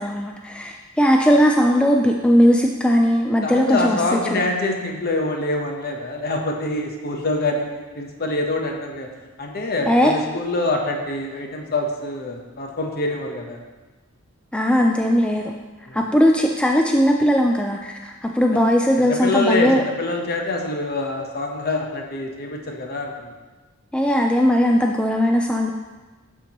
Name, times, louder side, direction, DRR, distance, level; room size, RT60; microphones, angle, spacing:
voice 1, 0.0-4.4 9.9-10.1 14.5-15.5 15.9-19.8 23.9-25.7, equal, 5° left, 1 dB, 0.3 m, -18 dB
voice 2, 3.4-9.1 9.4-13.6 15.9-16.0 19.0-23.3, left 2 dB, 50° left, 2 dB, 0.9 m, -25 dB
11.5 x 4.4 x 3.0 m, 1.3 s
head